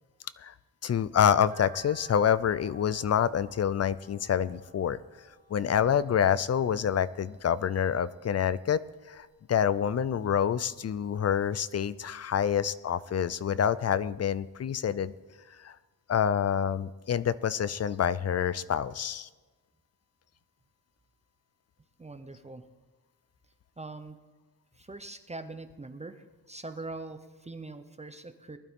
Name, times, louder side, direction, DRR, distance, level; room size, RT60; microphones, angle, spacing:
voice 1, 0.8-5.0 5.5-8.8 9.1-15.1 15.6-15.7 16.1-19.3, left 8 dB, 40° left, 17 dB, 0.4 m, -27 dB
sound 1, 1.5-7.8 8.2-9.3 9.7-11.1 11.5-11.6 12.0-12.1 12.4-12.5, right 4 dB, 60° right, 3.2 m, -57 dB
voice 2, 22.0-22.7 23.8-24.2 24.7-28.6, right 2 dB, 20° right, 9 dB, 0.6 m, -42 dB
20.0 x 11.5 x 3.6 m, 1.3 s
wide cardioid pair, 150°, 38 cm